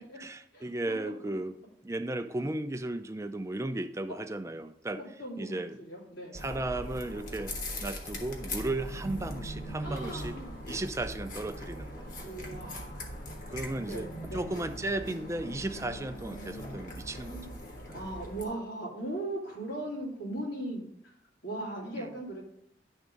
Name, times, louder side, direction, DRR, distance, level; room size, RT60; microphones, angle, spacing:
voice 1, 0.2-1.5 1.8-5.0 5.4-5.8 6.3-7.5 7.8-10.3 10.7-12.1 13.5-17.4 17.9-18.0 22.0-22.1, right 2 dB, 15° right, 8 dB, 0.4 m, -35 dB
voice 2, 5.0-6.4 9.8-10.6 12.2-13.4 13.9-14.5 17.3-17.5 17.9-21.1 21.4-22.4, right 1 dB, 85° left, -4 dB, 3.2 m, -39 dB
sound 1, 6.3-18.4, equal, 50° left, 1.4 m, -40 dB
10.5 x 3.6 x 5.2 m, 0.74 s
head